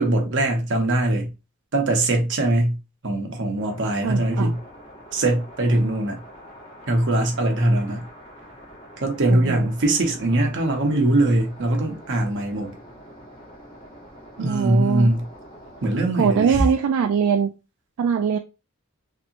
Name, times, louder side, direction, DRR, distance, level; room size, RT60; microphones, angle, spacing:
voice 1, 0.0-1.3 1.7-2.8 3.0-4.6 5.1-6.2 6.9-8.1 9.0-12.7 14.4-15.2 15.8-16.7, right 1 dB, 55° right, 0.8 m, -21 dB
sound 1, 3.6-16.0, equal, 25° left, 1.3 m, -45 dB
voice 2, 4.0-4.5 9.3-9.7 14.4-15.1 16.2-17.5 18.0-18.4, right 7 dB, 70° right, 0.3 m, -22 dB
3.3 x 2.9 x 2.5 m
head